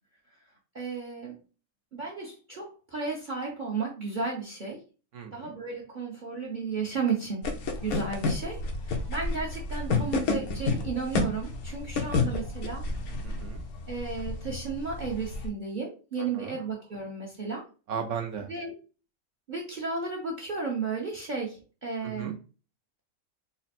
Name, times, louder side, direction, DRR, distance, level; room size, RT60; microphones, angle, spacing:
voice 1, 0.7-1.4 1.9-4.8 5.3-7.5 7.8-12.9 13.9-17.6 18.5-18.7 19.5-22.4, right 4 dB, 40° right, -1 dB, 0.9 m, -34 dB
voice 2, 5.1-5.5 7.9-8.1 13.2-13.6 16.3-16.6 17.9-18.5 22.0-22.3, right 7 dB, 65° right, 4 dB, 0.9 m, -36 dB
sound 1, 7.4-15.5, left 3 dB, 90° left, 1.3 m, -31 dB
4.1 x 2.0 x 4.2 m, 0.34 s
omnidirectional pair, 1.5 m